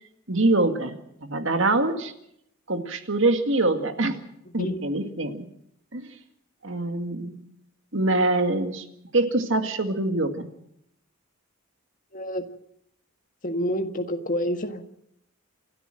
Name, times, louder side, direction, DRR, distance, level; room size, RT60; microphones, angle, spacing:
voice 1, 0.3-1.0 1.2-2.1 2.7-4.2 4.5-5.4 5.9-6.1 6.6-7.4 7.9-8.8 9.1-10.5, right 2 dB, 60° right, 7 dB, 2.0 m, -24 dB
voice 2, 4.5-4.8 12.1-12.5 13.4-14.9, equal, 40° left, 6 dB, 1.7 m, -28 dB
28.0 x 12.5 x 7.7 m, 0.75 s
head